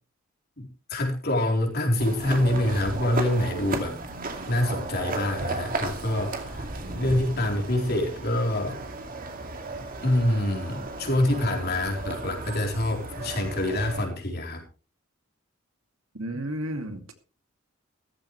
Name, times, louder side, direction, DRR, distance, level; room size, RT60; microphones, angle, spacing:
voice 1, 0.6-4.0 4.5-8.8 10.0-14.6, left 1 dB, 50° left, 2 dB, 4.1 m, -26 dB
sound 1, 2.0-14.1, right 2 dB, 45° right, 2.5 m, -35 dB
voice 2, 6.8-7.4 16.1-17.1, right 1 dB, 80° right, 6 dB, 2.4 m, -34 dB
15.5 x 14.0 x 3.3 m, 0.34 s
head